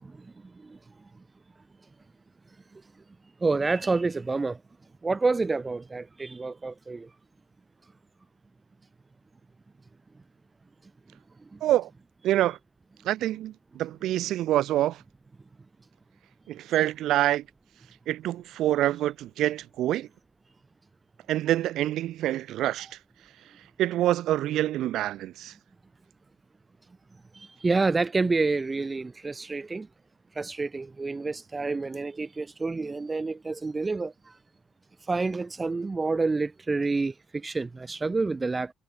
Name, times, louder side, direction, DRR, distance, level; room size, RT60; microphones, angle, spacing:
voice 1, 3.4-4.6 5.0-7.1 11.5-11.6 27.4-29.9 30.4-34.1 35.1-38.7, right 3 dB, 25° right, 4.0 m, -28 dB
voice 2, 11.6-11.9 12.2-12.6 13.0-15.0 16.5-17.4 18.1-20.1 21.3-23.0 23.8-25.5, right 13 dB, 85° right, 1.9 m, -26 dB
cardioid pair, 90°, 0 cm